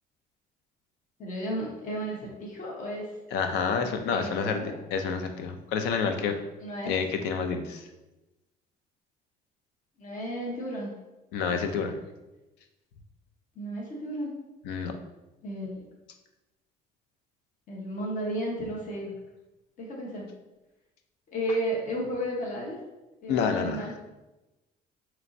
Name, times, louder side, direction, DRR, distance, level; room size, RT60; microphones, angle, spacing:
voice 1, 1.2-3.1 4.1-4.7 6.6-6.9 10.0-10.9 13.6-14.3 15.4-15.8 17.7-19.1 19.8-20.3 21.3-22.8 23.2-24.0, equal, 50° left, -2 dB, 1.0 m, -33 dB
voice 2, 3.3-4.6 4.9-6.4 6.9-7.8 11.3-12.0 14.7-14.9 23.3-24.0, left 6 dB, 90° left, 6 dB, 0.5 m, -28 dB
4.3 x 3.0 x 2.6 m, 1.0 s
cardioid pair, 110°, 17 cm